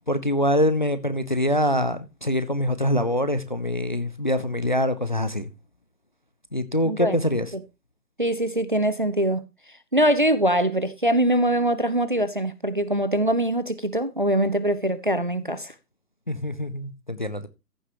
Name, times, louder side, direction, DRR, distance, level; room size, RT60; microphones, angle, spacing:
voice 1, 0.1-5.5 6.5-7.5 16.3-17.5, equal, 30° left, 0.4 m, -24 dB
voice 2, 6.8-7.2 8.2-9.4 9.9-15.7, right 1 dB, 35° right, 0.4 m, -23 dB
14.5 x 6.6 x 2.8 m
figure-of-eight pair, 145°, 49 cm